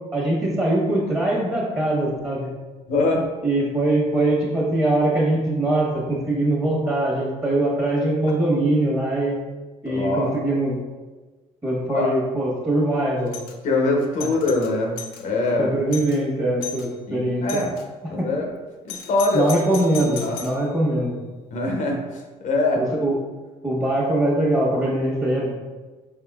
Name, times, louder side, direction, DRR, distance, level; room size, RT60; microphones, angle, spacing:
voice 1, 0.1-2.5 3.4-9.4 9.8-10.8 11.6-13.3 15.6-17.6 18.2-18.3 19.3-21.1 22.7-23.1 23.6-25.5, right 1 dB, 20° right, -4 dB, 1.2 m, -22 dB
voice 2, 2.9-3.3 9.9-10.4 11.9-12.1 13.6-15.7 17.1-17.7 18.1-18.5 18.8-19.5 20.0-20.4 21.5-22.9, left 2 dB, 60° left, 1 dB, 0.8 m, -23 dB
Doorbell, 13.3-13.6 14.0-15.2 15.6-15.7 15.9-16.2 16.6-16.9 17.5-17.9 18.9-20.6, left 6 dB, 85° left, 0.4 m, -36 dB
4.4 x 3.6 x 2.3 m, 1.3 s
supercardioid pair, 75°, 14 cm